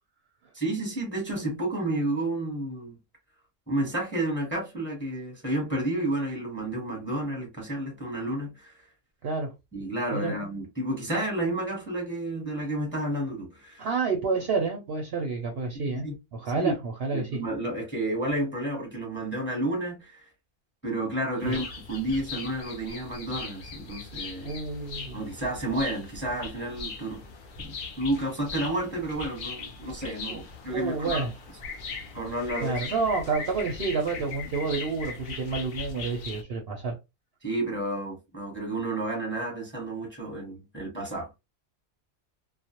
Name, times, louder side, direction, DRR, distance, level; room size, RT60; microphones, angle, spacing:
voice 1, 0.5-3.0 3.7-8.7 9.7-13.9 15.7-16.1 16.6-16.7 17.1-20.2 20.8-24.5 25.1-27.3 27.6-31.2 32.1-32.8 37.4-41.4, right 1 dB, 10° left, 0.7 m, -31 dB
voice 2, 13.8-17.4 21.4-21.6 24.4-25.2 30.3-30.4 30.7-31.3 32.6-37.0, right 4 dB, 60° right, 0.7 m, -29 dB
sound 1, 21.4-36.4, left 4 dB, 60° left, 0.5 m, -39 dB
2.3 x 2.0 x 2.7 m
omnidirectional pair, 1.4 m